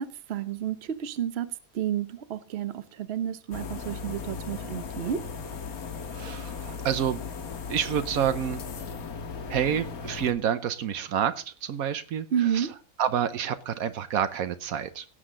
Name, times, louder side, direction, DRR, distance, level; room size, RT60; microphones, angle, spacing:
voice 1, 0.0-5.2 12.3-12.7, right 9 dB, 50° right, 12 dB, 1.0 m, -31 dB
sound 1, 3.5-10.3, left 5 dB, 85° left, 1.7 m, -37 dB
voice 2, 6.1-7.2 7.7-8.6 9.5-12.3 12.5-12.7 13.0-15.0, right 9 dB, 80° right, 11 dB, 1.2 m, -28 dB
17.5 x 7.9 x 3.8 m, 0.36 s
omnidirectional pair, 1.5 m